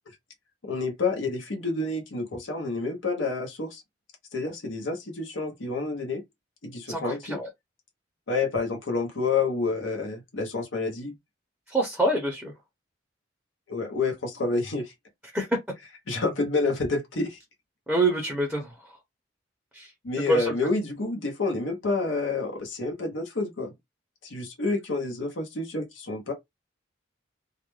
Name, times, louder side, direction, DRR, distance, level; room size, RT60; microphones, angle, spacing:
voice 1, 0.6-3.8 4.3-6.2 6.6-7.4 8.3-11.1 13.7-14.9 16.1-17.4 20.0-23.7 24.2-26.3, left 3 dB, 80° left, 0.8 m, -29 dB
voice 2, 6.9-7.5 11.7-12.5 15.3-15.5 17.9-18.7 19.7-19.9 20.3-20.5, right 1 dB, 5° right, 0.6 m, -26 dB
2.3 x 2.1 x 3.1 m
head